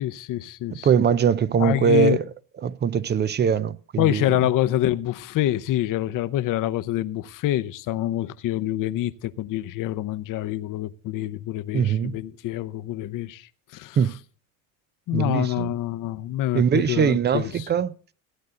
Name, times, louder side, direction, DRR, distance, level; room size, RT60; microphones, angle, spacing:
voice 1, 0.0-0.9 1.6-2.2 4.0-14.0 15.1-17.7, left 14 dB, 50° left, 0.8 m, -26 dB
voice 2, 0.7-2.2 2.6-4.4 11.7-12.2 14.0-14.1 15.1-15.7 16.5-17.9, right 7 dB, 25° right, 0.5 m, -22 dB
16.0 x 9.4 x 3.8 m
supercardioid pair, 95°, 40 cm